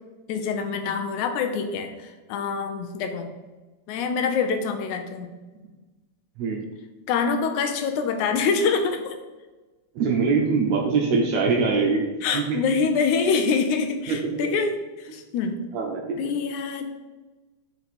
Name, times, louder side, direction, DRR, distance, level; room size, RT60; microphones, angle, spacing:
voice 1, 0.3-3.3 3.9-5.3 7.1-9.1 12.2-14.7 15.0-15.6 16.2-17.0, left 5 dB, 80° left, 6 dB, 1.9 m, -25 dB
voice 2, 9.9-12.0 12.3-12.6 14.1-14.5 15.7-16.3, right 4 dB, 75° right, 1 dB, 1.7 m, -23 dB
5.2 x 4.5 x 4.1 m, 1.2 s
omnidirectional pair, 3.6 m